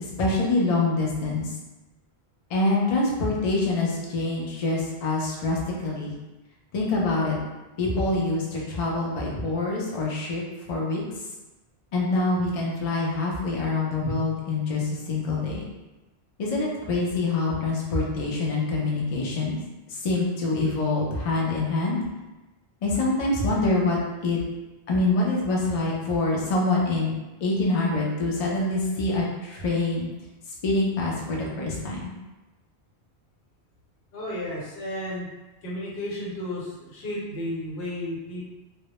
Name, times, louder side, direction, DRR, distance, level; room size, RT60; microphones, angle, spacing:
voice 1, 0.2-1.5 2.5-6.1 6.7-7.4 7.8-10.4 10.7-11.0 11.9-14.8 15.1-15.6 16.4-19.6 20.0-22.0 22.8-24.0 24.2-24.4 24.9-27.1 27.4-30.1 30.6-32.0, left 2 dB, 50° left, -3 dB, 0.5 m, -25 dB
voice 2, 34.1-35.3 35.6-38.4, left 1 dB, 85° left, -5 dB, 1.0 m, -33 dB
2.1 x 2.0 x 2.9 m, 1.1 s
omnidirectional pair, 1.1 m